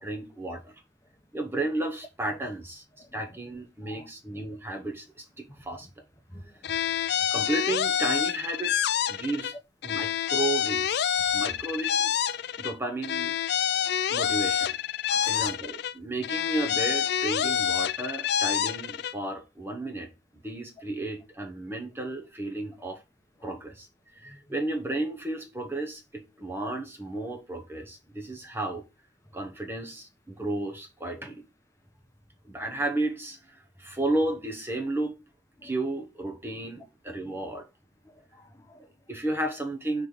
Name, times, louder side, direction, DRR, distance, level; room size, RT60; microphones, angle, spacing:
voice 1, 0.0-0.8 1.3-5.9 7.3-9.5 9.8-13.3 14.1-14.7 15.2-20.1 20.4-23.0 23.4-28.8 29.3-31.5 32.4-35.2 35.6-37.7 38.8-40.1, right 2 dB, 15° right, 0.9 m, -33 dB
voice 2, 6.3-6.7 9.9-10.0 15.1-15.5 17.4-17.5 23.4-23.5 24.2-24.6 31.1-31.2 35.6-35.7 37.2-37.4 38.0-38.8, left 2 dB, 20° left, 1.0 m, -48 dB
sound 1, 6.6-9.5 9.8-12.7 13.0-15.9 16.2-19.1, left 9 dB, 65° left, 0.3 m, -27 dB
5.4 x 3.2 x 5.4 m
head